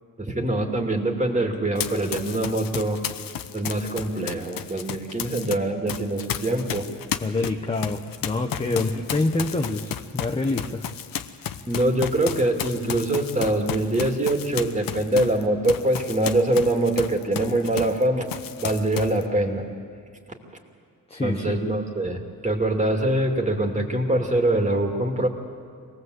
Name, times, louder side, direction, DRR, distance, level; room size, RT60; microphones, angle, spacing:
voice 1, 0.2-3.0 3.5-6.9 8.7-9.0 11.7-18.3 18.6-19.7 21.2-25.3, right 1 dB, 20° right, 2 dB, 2.7 m, -24 dB
Run, 1.8-5.6 5.9-18.0 18.3-19.2, left 9 dB, 70° left, 1.1 m, -33 dB
voice 2, 7.2-10.8 21.1-21.6, left 2 dB, 15° left, 3 dB, 1.1 m, -26 dB
25.0 x 19.0 x 8.0 m, 2.3 s
cardioid pair, 110°, 36 cm